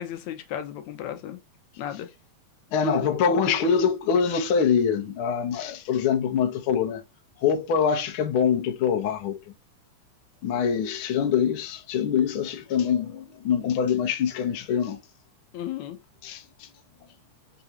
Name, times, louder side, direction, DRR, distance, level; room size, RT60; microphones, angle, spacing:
voice 1, 0.0-1.4 1.8-2.1 15.5-16.0, left 10 dB, 75° left, 1.9 m, -34 dB
voice 2, 2.7-7.0 7.4-9.4 10.4-15.0 16.2-16.7, left 7 dB, 60° left, 1.4 m, -24 dB
4.8 x 3.7 x 2.8 m
omnidirectional pair, 3.4 m